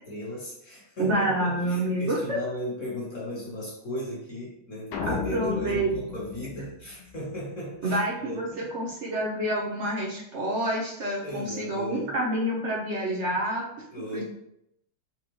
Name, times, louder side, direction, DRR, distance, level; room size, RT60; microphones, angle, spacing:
voice 1, 0.1-8.7 11.2-12.2 13.9-14.2, left 1 dB, 45° left, -4 dB, 1.3 m, -36 dB
voice 2, 1.0-2.4 5.0-5.9 7.8-8.5 8.7-13.6 14.1-14.2, right 1 dB, 55° right, -3 dB, 0.7 m, -28 dB
sound 1, 4.9-7.4, left 5 dB, 80° left, 1.5 m, -34 dB
4.4 x 2.3 x 4.5 m, 0.76 s
omnidirectional pair, 2.3 m